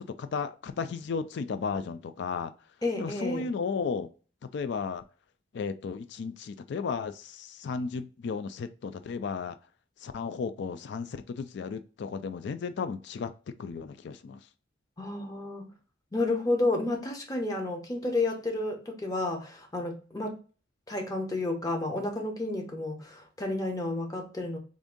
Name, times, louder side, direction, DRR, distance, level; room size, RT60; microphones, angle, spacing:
voice 1, 0.0-2.5 3.0-4.1 4.5-5.0 5.5-9.6 10.0-13.3 13.6-14.4, left 5 dB, 60° left, 11 dB, 0.3 m, -34 dB
voice 2, 2.8-3.5 15.0-15.7 16.1-20.4 20.9-24.6, left 2 dB, 20° left, 2 dB, 0.8 m, -31 dB
3.6 x 2.6 x 3.6 m, 0.36 s
head